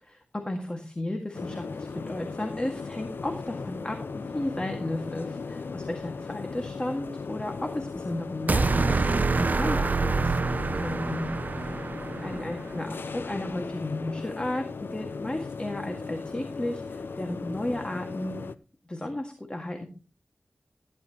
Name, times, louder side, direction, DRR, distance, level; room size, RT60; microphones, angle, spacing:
voice 1, 0.0-11.3 12.2-18.4 18.9-19.9, left 1 dB, 25° left, 4 dB, 1.9 m, -34 dB
sound 1, 1.3-18.6, left 4 dB, 85° left, 0.6 m, -37 dB
sound 2, 8.5-12.7, right 4 dB, 55° right, 0.5 m, -26 dB
15.0 x 10.5 x 2.9 m, 0.35 s
wide cardioid pair, 70°, 4 cm